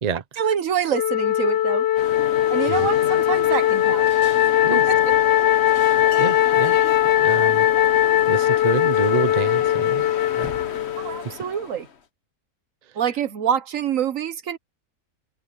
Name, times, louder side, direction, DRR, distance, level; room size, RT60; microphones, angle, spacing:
voice 1, 0.4-1.9 2.5-4.1 4.7-5.1 11.0-11.9 12.9-14.6, right 8 dB, 60° right, 1.2 m, -26 dB
Wind instrument woodwind instrument, 0.9-11.3, left 12 dB, 75° left, 0.6 m, -19 dB
sound 1, 2.0-12.0, left 6 dB, 45° left, 1.3 m, -35 dB
voice 2, 5.8-6.8 7.2-7.7 8.3-10.0 10.4-10.5, right 6 dB, 35° right, 0.7 m, -28 dB
open air
omnidirectional pair, 1.7 m